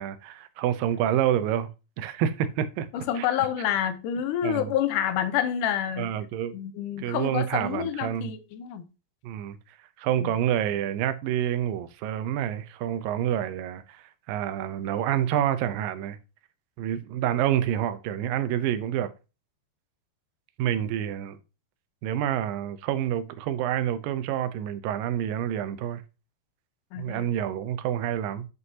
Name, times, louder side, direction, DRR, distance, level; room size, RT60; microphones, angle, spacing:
voice 1, 0.0-1.7 2.0-3.3 4.4-4.7 6.0-6.6 7.0-8.3 9.2-9.6 10.0-16.2 16.8-19.1 20.6-21.4 22.0-26.0 27.0-28.5, right 10 dB, 90° right, 2.4 m, -28 dB
voice 2, 2.9-6.1 6.5-8.8 10.2-10.4 26.9-27.3, left 10 dB, 75° left, 2.2 m, -28 dB
9.5 x 5.3 x 2.8 m
omnidirectional pair, 3.9 m